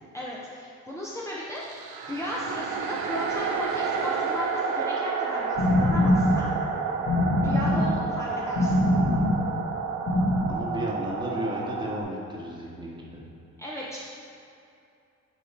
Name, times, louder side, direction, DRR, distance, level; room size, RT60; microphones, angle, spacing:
voice 1, 0.1-6.5 7.4-8.8 13.6-14.0, left 1 dB, 10° left, -6 dB, 0.7 m, -35 dB
sound 1, 1.6-12.0, right 5 dB, 90° right, 0.6 m, -30 dB
sound 2, 5.4-10.5, left 1 dB, 55° left, 1.3 m, -24 dB
voice 2, 10.5-13.2, equal, 15° right, -4 dB, 1.3 m, -34 dB
8.8 x 3.1 x 4.2 m, 2.6 s
cardioid pair, 90°, 30 cm